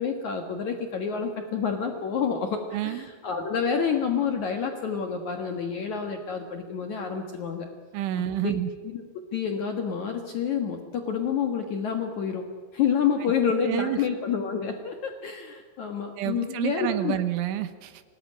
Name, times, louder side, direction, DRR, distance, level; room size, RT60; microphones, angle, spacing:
voice 1, 0.0-7.7 8.4-8.6 8.8-9.0 9.3-12.4 12.7-17.1, left 6 dB, 85° left, 4 dB, 1.6 m, -28 dB
voice 2, 2.7-3.1 7.9-8.7 13.6-14.0 16.2-18.0, right 12 dB, 75° right, 10 dB, 3.5 m, -29 dB
25.0 x 19.0 x 9.9 m, 1.5 s
omnidirectional pair, 5.8 m